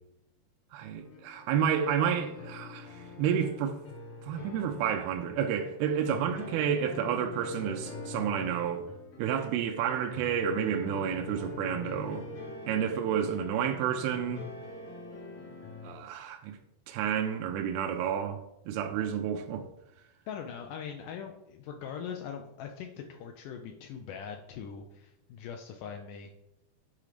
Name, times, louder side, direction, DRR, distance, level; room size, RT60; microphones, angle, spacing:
voice 1, 0.7-3.8 4.2-8.9 9.2-12.2 12.7-14.4 15.8-16.6 16.9-18.4 18.7-19.7, right 8 dB, 90° right, 2.6 m, -30 dB
sound 1, 0.9-15.9, left 3 dB, 65° left, 1.3 m, -44 dB
voice 2, 20.3-26.3, left 7 dB, 90° left, 1.8 m, -41 dB
8.5 x 3.8 x 5.0 m
omnidirectional pair, 4.4 m